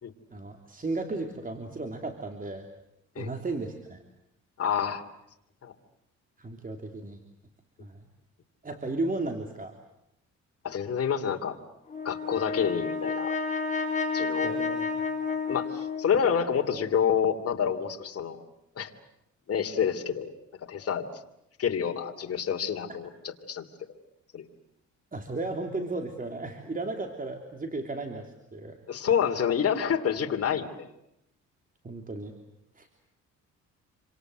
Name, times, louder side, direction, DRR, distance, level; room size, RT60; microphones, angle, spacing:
voice 1, 0.3-2.7 3.2-4.0 6.4-7.2 7.8-8.0 8.6-9.8 14.4-15.0 25.1-28.8 31.8-32.3 32.7-32.9, right 2 dB, 30° right, 5 dB, 3.2 m, -35 dB
voice 2, 4.6-5.0 5.6-5.7 10.6-11.6 12.0-13.3 14.1-14.6 15.5-18.4 18.8-18.9 19.5-20.3 20.7-21.1 21.6-23.7 24.3-24.4 28.9-30.9, left 7 dB, 50° left, 5 dB, 3.0 m, -28 dB
Brass instrument, 11.9-16.3, left 4 dB, 25° left, 4.5 m, -31 dB
27.5 x 26.0 x 8.0 m, 0.81 s
cardioid pair, 90°, 30 cm